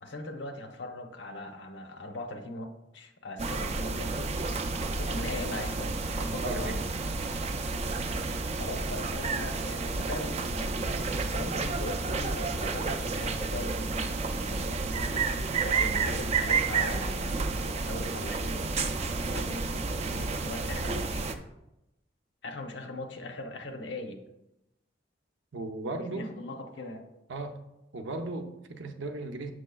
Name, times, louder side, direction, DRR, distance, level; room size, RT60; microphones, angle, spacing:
voice 1, 0.0-4.3 5.0-6.0 6.2-6.8 8.6-15.3 15.6-18.8 19.3-21.2 22.4-24.2 25.9-27.0, left 2 dB, 75° left, 5 dB, 0.8 m, -40 dB
sound 1, 3.4-21.3, right 4 dB, 35° right, 0.4 m, -31 dB
voice 2, 6.2-6.8 25.5-26.3 27.3-27.6 27.9-29.5, right 2 dB, 85° right, 6 dB, 0.7 m, -36 dB
7.5 x 6.4 x 2.3 m, 0.90 s
head